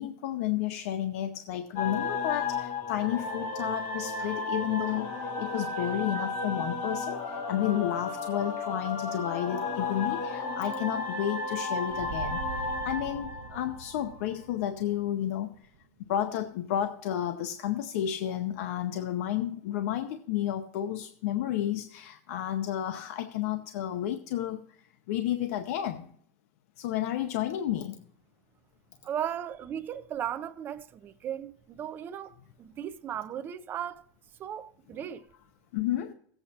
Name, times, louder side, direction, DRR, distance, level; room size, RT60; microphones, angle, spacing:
voice 1, 0.0-12.4 12.8-15.7 16.1-24.6 25.1-26.1 26.8-28.0 35.7-36.1, left 11 dB, 70° left, 0.7 m, -31 dB
sound 1, 1.8-14.3, left 3 dB, 50° left, 2.0 m, -33 dB
sound 2, 11.9-15.9, right 5 dB, 65° right, 1.0 m, -43 dB
voice 2, 29.0-34.1 34.4-35.2, right 9 dB, 25° right, 0.5 m, -36 dB
17.0 x 8.1 x 2.8 m
supercardioid pair, 170°, 8 cm